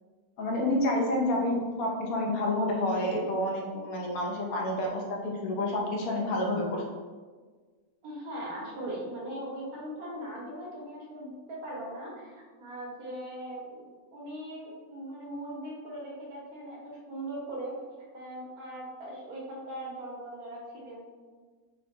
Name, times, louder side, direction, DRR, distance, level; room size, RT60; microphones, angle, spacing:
voice 1, 0.4-6.8, left 1 dB, 75° left, 0 dB, 1.1 m, -29 dB
voice 2, 8.0-17.8 18.1-21.1, right 1 dB, 85° right, -4 dB, 1.5 m, -40 dB
4.0 x 2.8 x 3.2 m, 1.5 s
omnidirectional pair, 1.5 m